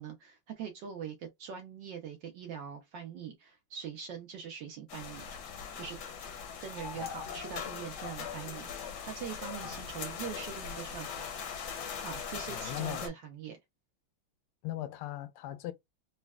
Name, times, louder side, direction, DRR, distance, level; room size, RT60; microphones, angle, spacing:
voice 1, 0.0-5.3 5.8-6.0 6.6-8.7 9.0-11.1 12.0-13.6, right 7 dB, 70° right, 1.1 m, -42 dB
sound 1, 4.9-13.1, left 7 dB, 65° left, 1.1 m, -40 dB
voice 2, 12.5-13.1 14.6-15.7, left 13 dB, 85° left, 1.5 m, -39 dB
4.0 x 2.2 x 2.2 m
omnidirectional pair, 2.4 m